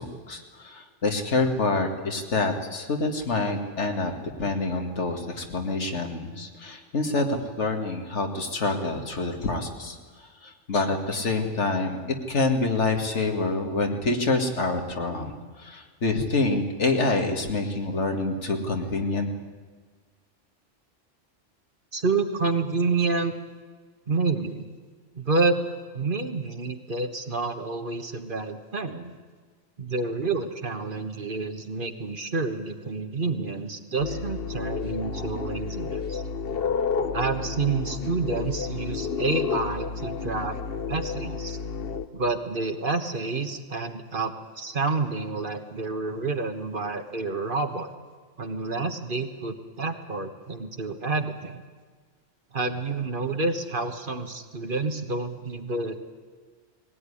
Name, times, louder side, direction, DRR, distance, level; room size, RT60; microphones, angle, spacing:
voice 1, 0.0-4.1 4.4-10.0 10.4-12.0 12.3-19.3, left 3 dB, 70° left, 4 dB, 2.3 m, -27 dB
voice 2, 21.9-23.3 24.1-24.7 25.1-25.6 25.9-29.1 29.8-36.2 37.1-40.6 40.9-41.6 42.1-47.9 48.4-51.6 52.5-56.1, right 3 dB, 45° right, 7 dB, 1.5 m, -29 dB
sound 1, 34.0-42.1, left 5 dB, 55° left, 1.1 m, -31 dB
20.0 x 17.0 x 9.9 m, 1.5 s
omnidirectional pair, 1.2 m